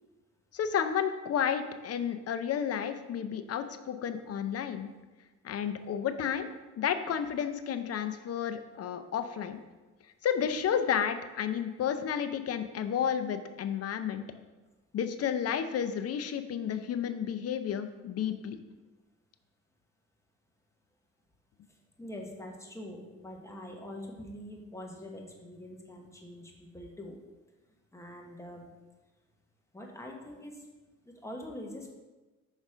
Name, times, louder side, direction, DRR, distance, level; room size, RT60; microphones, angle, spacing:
voice 1, 0.5-4.9 5.4-9.6 10.2-14.2 14.9-18.6, left 8 dB, 55° left, 10 dB, 0.6 m, -31 dB
voice 2, 21.7-27.2 27.9-28.7 29.7-30.7 31.0-31.9, left 1 dB, 10° left, 0 dB, 1.3 m, -44 dB
6.2 x 4.1 x 4.9 m, 1.2 s
cardioid pair, 90°, 30 cm